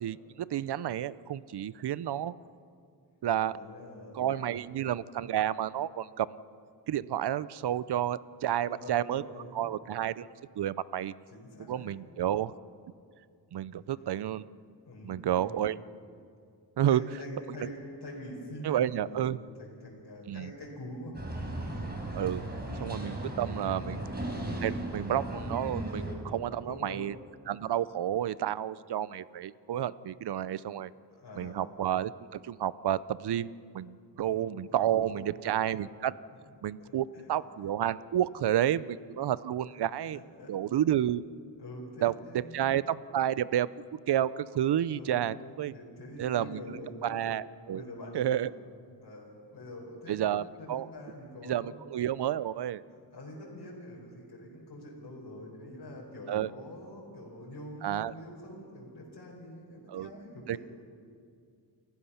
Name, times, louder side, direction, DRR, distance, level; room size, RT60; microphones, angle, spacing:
voice 1, 0.0-2.3 3.2-3.5 4.1-6.3 6.9-9.2 9.5-10.3 10.6-11.1 11.7-12.5 13.5-14.4 15.0-15.8 16.8-17.0 18.6-19.4 20.3-20.5 22.1-22.4 22.8-24.0 24.6-27.1 27.5-30.9 31.4-36.1 36.6-40.2 40.5-41.2 42.0-45.7 46.2-47.8 48.1-48.5 50.1-50.9 51.5-52.8 56.3-56.5 57.8-58.1 59.9-60.1 60.5-60.6, right 11 dB, 70° right, 18 dB, 0.6 m, -30 dB
voice 2, 3.4-4.6 8.6-9.7 11.3-12.0 13.7-13.9 14.8-15.7 16.8-21.2 22.9-23.0 23.7-24.1 26.6-27.0 31.1-31.6 34.1-35.7 36.8-37.4 40.1-40.5 41.6-42.7 45.0-47.2 47.7-48.6 49.0-51.8 52.9-60.6, left 1 dB, 65° left, -4 dB, 4.8 m, -45 dB
sound 1, 21.1-26.2, right 1 dB, 25° right, 4.7 m, -36 dB
29.5 x 15.0 x 5.8 m, 2.2 s
cardioid pair, 80°, 41 cm